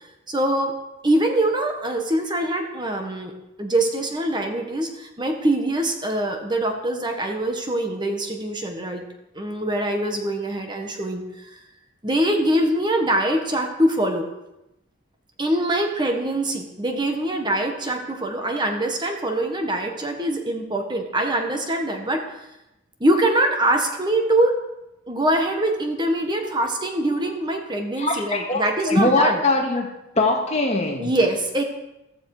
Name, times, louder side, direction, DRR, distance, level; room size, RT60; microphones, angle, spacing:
voice 1, 0.3-0.8 1.0-3.3 3.6-9.0 9.3-11.6 12.0-14.2 15.4-22.2 23.0-24.6 25.1-29.4 31.0-31.6, right 1 dB, 20° right, 3 dB, 1.5 m, -23 dB
voice 2, 28.0-29.9 30.2-31.1, left 2 dB, 30° left, 1 dB, 2.2 m, -21 dB
15.0 x 14.0 x 5.0 m, 0.93 s
head